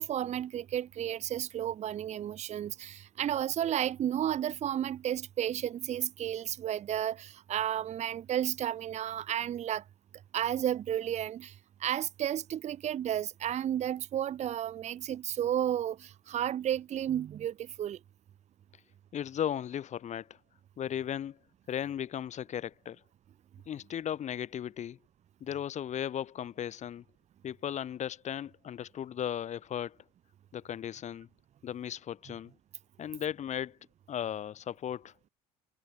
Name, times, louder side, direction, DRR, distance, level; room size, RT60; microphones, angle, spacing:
voice 1, 0.0-9.8 10.3-18.0, right 11 dB, 35° right, 0.9 m, -32 dB
voice 2, 19.1-20.4 20.8-21.4 21.7-23.0 23.7-25.0 25.4-27.0 27.4-30.0 30.5-31.3 31.6-32.5 33.0-33.8 34.1-35.1, left 10 dB, 35° left, 1.4 m, -36 dB
figure-of-eight pair, 65°, 20 cm